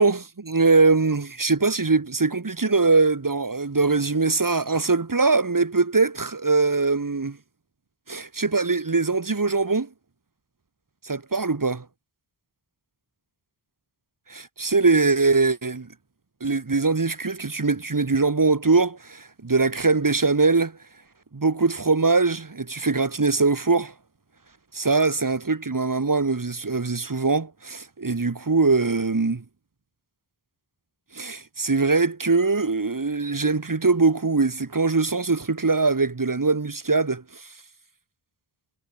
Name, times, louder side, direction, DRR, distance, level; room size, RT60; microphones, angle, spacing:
voice 1, 0.0-7.4 8.1-9.9 11.0-11.9 14.3-15.9 16.4-20.8 21.3-23.9 24.7-29.4 31.1-37.4, right 3 dB, 40° right, 3.5 m, -22 dB
wide cardioid pair, 90°, 47 cm